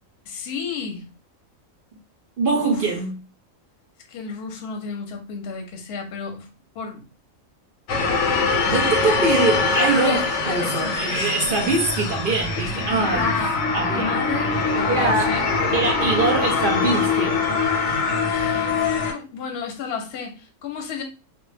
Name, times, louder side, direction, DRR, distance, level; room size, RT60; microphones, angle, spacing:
voice 1, 0.3-1.1 2.6-2.9 4.1-7.1 8.3-8.8 10.0-11.3 11.6-11.7 13.0-13.6 13.9-15.5 18.3-21.0, left 5 dB, 55° left, 0.8 m, -32 dB
voice 2, 2.4-3.2 8.6-10.2 10.5-13.3 13.7-14.1 14.9-15.4 15.7-17.4, right 3 dB, 60° right, 0.6 m, -23 dB
sound 1, 7.9-19.1, left 4 dB, 85° left, 1.0 m, -23 dB
2.2 x 2.1 x 3.1 m
omnidirectional pair, 1.4 m